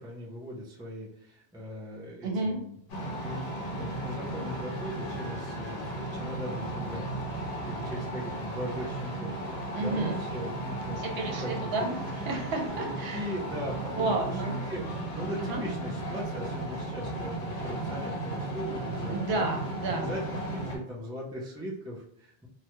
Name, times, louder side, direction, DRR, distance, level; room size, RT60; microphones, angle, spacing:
voice 1, 0.0-2.7 3.1-11.0 11.2-11.9 12.8-19.5 19.8-22.5, equal, 5° right, -5 dB, 0.4 m, -39 dB
voice 2, 2.2-2.6 9.7-10.2 11.0-13.3 14.0-14.6 15.4-15.6 19.1-20.1, right 2 dB, 70° right, 1 dB, 0.8 m, -31 dB
sound 1, 2.9-20.8, right 1 dB, 60° left, 0.8 m, -35 dB
2.2 x 2.1 x 2.9 m, 0.72 s
omnidirectional pair, 1.1 m